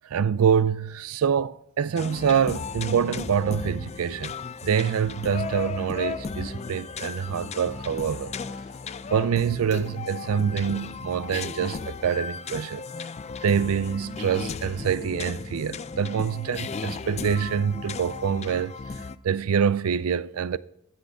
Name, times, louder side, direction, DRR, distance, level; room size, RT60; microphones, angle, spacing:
voice 1, 0.1-4.3 4.6-8.3 9.1-12.8 13.4-18.7 19.2-20.6, right 7 dB, 75° right, 0.4 m, -25 dB
sound 1, 2.0-19.2, left 5 dB, 30° left, 0.4 m, -35 dB
12.0 x 7.5 x 5.6 m
head